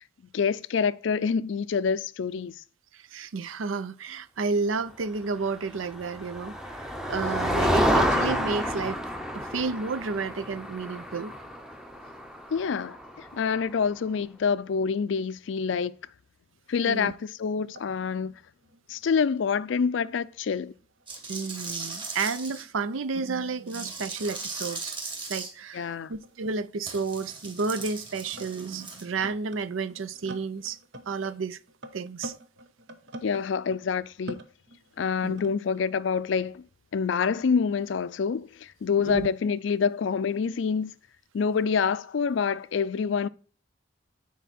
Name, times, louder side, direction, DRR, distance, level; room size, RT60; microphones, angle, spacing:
voice 1, 0.3-2.6 12.5-15.9 16.7-18.3 18.9-20.7 25.7-26.1 33.2-34.4 35.0-36.6 36.9-40.9 41.3-43.3, left 6 dB, 70° left, 0.4 m, -27 dB
voice 2, 2.9-9.0 9.3-11.3 16.8-17.1 21.3-25.0 25.3-30.8 31.1-31.6 31.9-32.3 35.2-35.4 39.0-39.3, right 4 dB, 85° right, 0.6 m, -31 dB
Motor vehicle (road), 5.7-13.5, equal, 5° right, 0.7 m, -29 dB
sound 1, 17.1-17.2 17.5-20.4 20.7-24.5 25.3-25.5 26.1-33.9 34.2-35.9, right 1 dB, 65° right, 1.0 m, -48 dB
sound 2, 21.1-22.6 23.7-25.5 26.9-29.0, right 3 dB, 25° right, 1.9 m, -38 dB
9.2 x 4.7 x 4.2 m
head